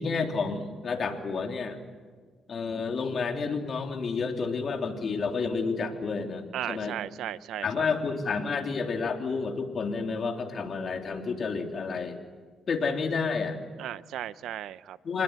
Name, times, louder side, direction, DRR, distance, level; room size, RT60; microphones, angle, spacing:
voice 1, 0.0-1.8 2.5-6.9 7.6-12.2 12.7-13.6 15.0-15.2, left 4 dB, 50° left, 4 dB, 3.3 m, -30 dB
voice 2, 6.5-7.9 13.8-15.0, right 11 dB, 80° right, 17 dB, 0.7 m, -36 dB
27.0 x 20.5 x 8.2 m, 1.5 s
cardioid pair, 90°, 0 cm